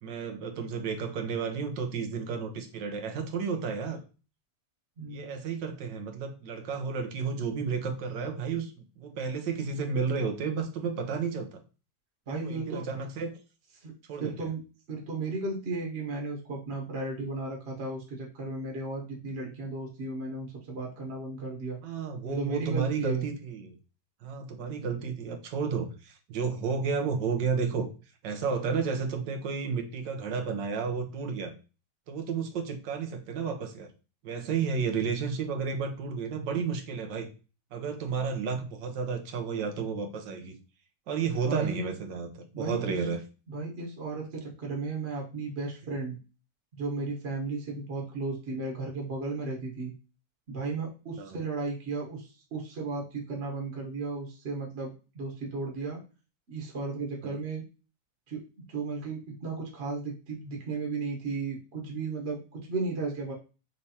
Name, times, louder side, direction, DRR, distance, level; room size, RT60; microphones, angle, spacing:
voice 1, 0.0-4.1 5.1-11.6 12.3-13.4 14.1-14.5 21.8-23.8 24.2-27.9 28.2-31.5 32.1-33.9 34.2-37.3 37.7-40.6 41.1-43.2 51.2-51.3 57.2-57.4, right 5 dB, 90° right, 6 dB, 1.4 m, -32 dB
voice 2, 5.0-5.5 12.3-12.8 13.8-13.9 14.2-14.6 14.9-21.8 22.2-23.2 41.5-41.9 42.5-42.9 43.5-46.2 46.7-49.9 50.5-56.0 56.5-57.6 58.3-63.3, right 3 dB, 45° right, -1 dB, 1.2 m, -35 dB
5.8 x 3.2 x 2.8 m, 0.33 s
omnidirectional pair, 1.9 m